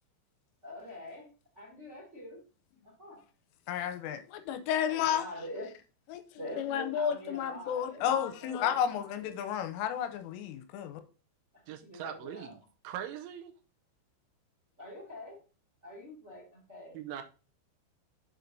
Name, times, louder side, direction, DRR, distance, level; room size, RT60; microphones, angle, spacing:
voice 1, 0.6-1.3 1.5-2.4 2.8-3.2 4.8-5.7 6.4-9.4 11.7-12.5 14.8-15.4 15.8-17.0, left 1 dB, 45° right, 0.8 m, -45 dB
voice 2, 3.7-5.2 6.1-6.2 6.6-11.0, left 9 dB, 85° left, 3.1 m, -32 dB
voice 3, 11.7-13.5 16.9-17.2, right 10 dB, 85° right, 3.2 m, -41 dB
7.7 x 6.7 x 2.7 m
omnidirectional pair, 5.8 m